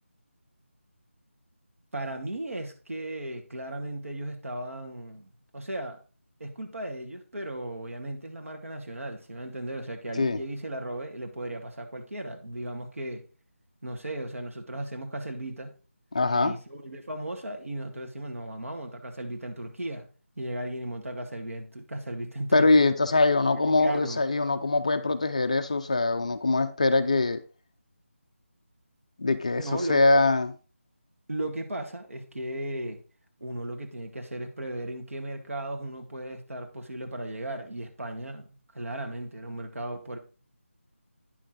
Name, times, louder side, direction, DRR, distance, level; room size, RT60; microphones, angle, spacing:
voice 1, 1.9-6.0 6.4-13.2 13.8-15.7 16.3-20.1 20.4-22.9 23.5-24.2 29.6-30.0 31.3-33.0 33.4-40.2, right 1 dB, 80° right, 2.0 m, -36 dB
voice 2, 16.1-16.5 22.5-27.4 29.2-30.5, left 3 dB, 30° left, 0.5 m, -23 dB
9.8 x 6.3 x 3.8 m
figure-of-eight pair, 175°, 7 cm